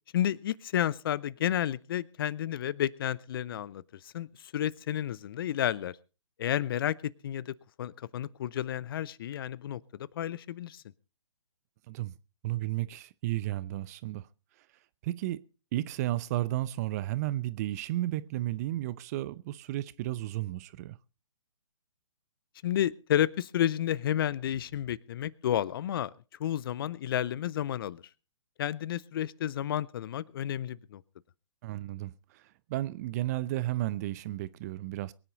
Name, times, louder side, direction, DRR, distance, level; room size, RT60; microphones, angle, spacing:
voice 1, 0.1-3.8 4.1-4.3 4.5-6.0 6.4-9.8 10.2-10.8 22.6-26.1 26.4-28.0 28.6-31.0, left 11 dB, 45° left, 0.7 m, -31 dB
voice 2, 12.4-14.3 15.0-15.4 15.7-21.0 31.6-32.4 32.7-35.1, right 15 dB, 30° right, 0.7 m, -33 dB
23.0 x 10.0 x 3.9 m
figure-of-eight pair, 135°, 16 cm